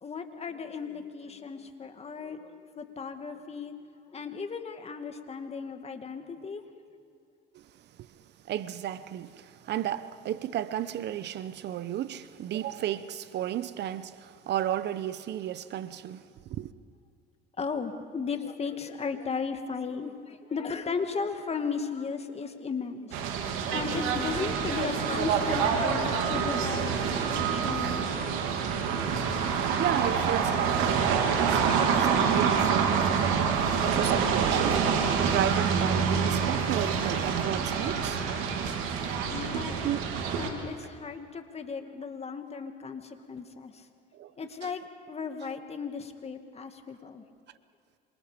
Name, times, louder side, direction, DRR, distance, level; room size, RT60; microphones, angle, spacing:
voice 1, 0.0-3.7 4.1-6.6 17.6-23.2 23.7-28.6 39.3-39.8 40.4-43.8 44.4-47.2, left 5 dB, 30° left, 2.3 m, -36 dB
voice 2, 8.4-16.7 27.8-27.9 28.3-28.8 29.4-38.3 39.8-40.1 44.1-44.3 44.6-44.7, right 11 dB, 55° right, 0.9 m, -34 dB
sound 1, 23.1-40.5, right 6 dB, 75° right, 3.3 m, -27 dB
27.5 x 25.5 x 5.2 m
supercardioid pair, 90°, 21 cm